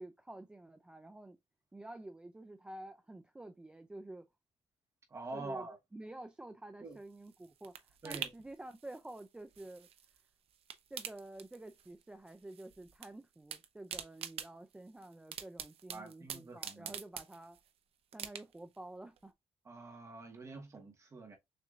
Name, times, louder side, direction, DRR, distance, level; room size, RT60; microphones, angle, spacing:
voice 1, 0.0-1.4 1.7-4.3 5.3-9.9 10.9-17.6 18.1-19.3, right 2 dB, 10° right, 0.3 m, -50 dB
voice 2, 5.1-5.8 6.8-7.0 8.0-8.3 15.9-16.9 19.6-21.4, right 3 dB, 25° right, 1.1 m, -46 dB
sound 1, 6.9-10.2 10.5-12.0 12.3-13.1 13.3-17.7 18.1-18.8 19.2-19.3, right 9 dB, 55° right, 0.6 m, -46 dB
6.6 x 2.6 x 2.4 m
cardioid pair, 160°, 12 cm